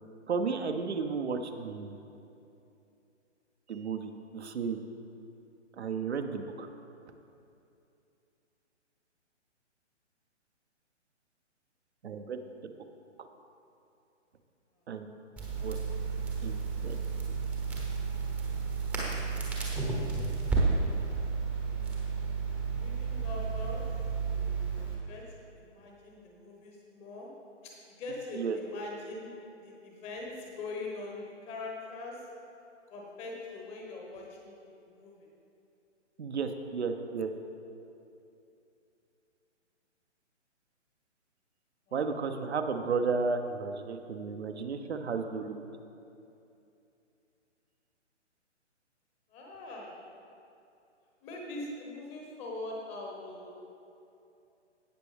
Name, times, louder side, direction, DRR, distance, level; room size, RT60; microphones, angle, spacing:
voice 1, 0.3-2.0 3.7-4.8 5.8-6.7 12.0-12.4 14.9-15.1 15.6-15.8 16.4-17.0 28.3-28.6 36.2-37.3 41.9-45.6, right 5 dB, 60° right, 5 dB, 0.9 m, -33 dB
Crackle, 15.4-24.9, right 4 dB, 5° right, 0.9 m, -32 dB
voice 2, 19.7-20.3 20.6-21.5 22.7-23.9 24.3-25.3 25.5-27.3 27.6-32.2 32.9-35.3 41.9-42.1 49.3-50.0 51.2-53.6, left 2 dB, 15° left, -1 dB, 1.2 m, -43 dB
17.5 x 6.0 x 3.4 m, 2.7 s
figure-of-eight pair, 135°, 37 cm